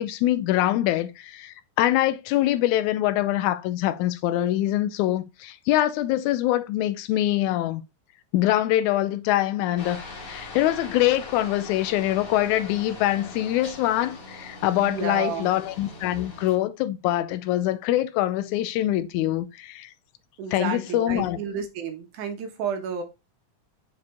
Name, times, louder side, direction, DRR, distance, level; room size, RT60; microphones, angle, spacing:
voice 1, 0.0-7.8 8.3-10.0 10.3-19.9 20.5-21.4, left 14 dB, 80° left, 1.9 m, -24 dB
Aircraft, 9.8-16.6, left 2 dB, 45° left, 2.8 m, -41 dB
voice 2, 14.8-15.5 20.4-23.0, right 6 dB, 75° right, 2.6 m, -31 dB
6.5 x 4.7 x 3.5 m
omnidirectional pair, 3.7 m